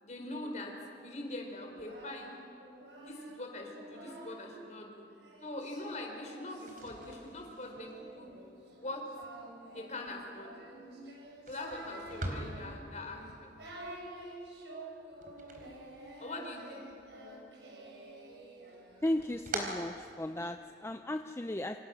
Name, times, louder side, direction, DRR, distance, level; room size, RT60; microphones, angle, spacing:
voice 1, 0.0-2.3 3.0-5.0 5.4-8.3 8.8-9.0 9.7-10.5 11.5-13.5 16.2-16.8, left 2 dB, 40° left, 2 dB, 4.4 m, -43 dB
Singing, 1.6-4.6 5.2-19.7, right 1 dB, 75° right, 5.7 m, -49 dB
sound 1, 6.5-16.5 16.9-17.7 18.1-20.7, right 2 dB, 50° right, 3.8 m, -46 dB
voice 2, 19.0-21.8, left 1 dB, 15° left, 7 dB, 0.6 m, -35 dB
27.5 x 26.5 x 6.4 m, 2.6 s
head